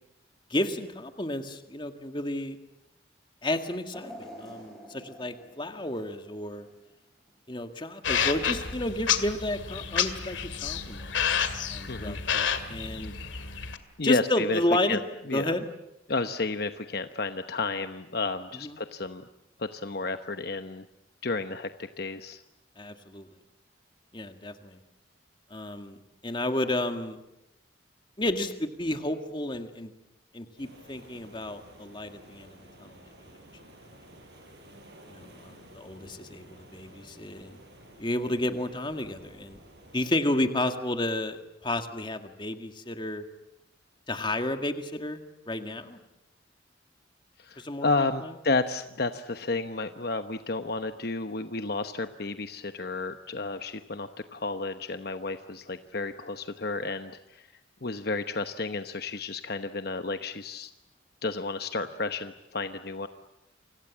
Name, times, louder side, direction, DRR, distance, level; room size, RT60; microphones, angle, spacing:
voice 1, 0.5-2.6 3.4-6.7 7.5-11.1 11.7-13.1 14.0-15.0 15.3-15.7 18.6-18.7 22.8-23.3 24.1-24.8 25.5-27.2 28.2-29.9 30.3-33.0 35.1-36.5 36.7-37.6 38.0-39.6 39.9-43.2 44.1-45.2 45.5-46.0 47.6-48.3, left 1 dB, 25° left, 7 dB, 2.0 m, -31 dB
sound 1, 3.9-7.1 7.5-7.6 8.7-8.8, equal, ahead, 7.0 m, -47 dB
sound 2, 8.0-13.8, left 7 dB, 75° left, 2.1 m, -30 dB
voice 2, 11.9-12.2 13.1-13.3 14.0-14.6 14.9-15.0 15.3-15.5 16.1-19.3 19.6-20.9 21.2-21.7 22.0-22.4 47.4-57.4 57.8-60.7 61.2-63.1, left 3 dB, 55° left, 9 dB, 1.0 m, -31 dB
sound 3, 30.6-40.1, right 1 dB, 60° right, 6.8 m, -52 dB
29.0 x 26.0 x 7.4 m, 0.88 s
head